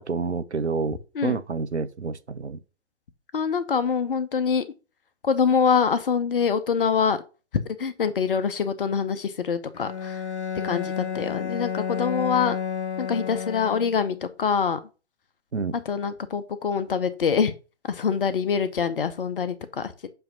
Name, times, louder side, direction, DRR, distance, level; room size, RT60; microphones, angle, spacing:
voice 1, 0.0-2.6 15.5-15.8, right 4 dB, 85° right, 0.7 m, -29 dB
voice 2, 3.3-4.6 5.2-7.2 7.8-10.2 10.6-12.6 13.0-14.8 15.9-17.5 17.9-20.1, left 6 dB, 55° left, 0.9 m, -25 dB
Bowed string instrument, 9.7-14.2, left 7 dB, 80° left, 0.8 m, -31 dB
7.8 x 2.8 x 5.2 m
figure-of-eight pair, 125°, 33 cm